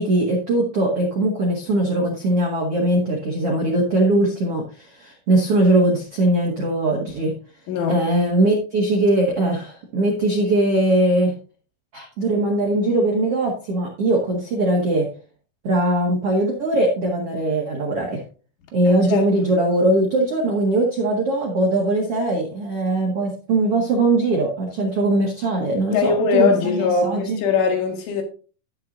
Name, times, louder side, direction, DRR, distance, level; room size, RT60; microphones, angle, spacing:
voice 1, 0.0-7.3 7.9-11.3 11.9-15.1 15.6-18.2 18.7-27.4, right 1 dB, 85° right, 1.3 m, -20 dB
voice 2, 7.7-8.0 18.9-19.3 25.9-28.2, left 5 dB, 75° left, 4.3 m, -21 dB
12.0 x 9.4 x 2.6 m
omnidirectional pair, 5.7 m